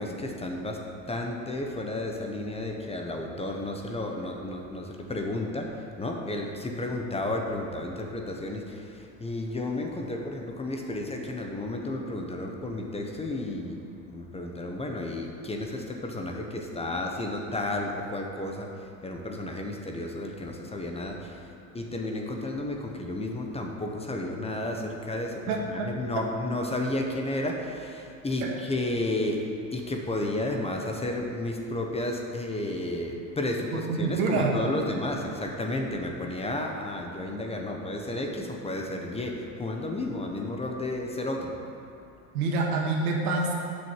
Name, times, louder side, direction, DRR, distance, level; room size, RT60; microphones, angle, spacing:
voice 1, 0.0-41.7, left 1 dB, 15° left, 2 dB, 1.0 m, -32 dB
voice 2, 25.5-26.2 28.4-28.5 33.7-34.5 42.3-43.5, right 3 dB, 90° right, -1 dB, 1.9 m, -27 dB
7.7 x 6.5 x 7.3 m, 2.4 s
supercardioid pair, 110°, 43 cm